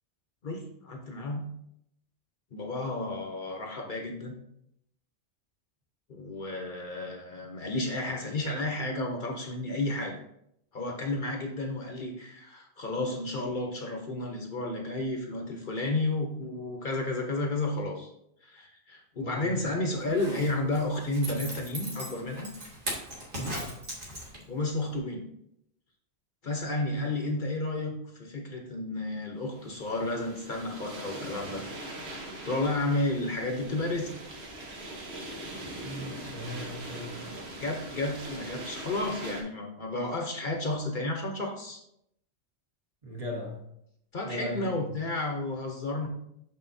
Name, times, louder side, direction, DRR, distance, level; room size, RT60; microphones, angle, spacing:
voice 1, 0.4-1.5 2.5-4.4 6.1-10.2 10.7-18.1 18.4-22.5 24.5-25.3 26.4-31.7 32.4-34.1 37.6-41.8 44.1-46.1, left 2 dB, 50° left, 2 dB, 0.9 m, -32 dB
voice 2, 19.2-19.6 23.3-23.7 27.0-27.1 35.8-37.2 43.0-43.7 44.2-44.9, equal, 35° right, -1 dB, 1.1 m, -38 dB
Zipper (clothing), 20.0-24.6 25.0-25.1, right 1 dB, 50° right, 1.6 m, -38 dB
sound 1, 29.5-39.4, right 1 dB, 65° right, 1.3 m, -41 dB
6.3 x 5.7 x 2.6 m, 0.75 s
omnidirectional pair, 1.1 m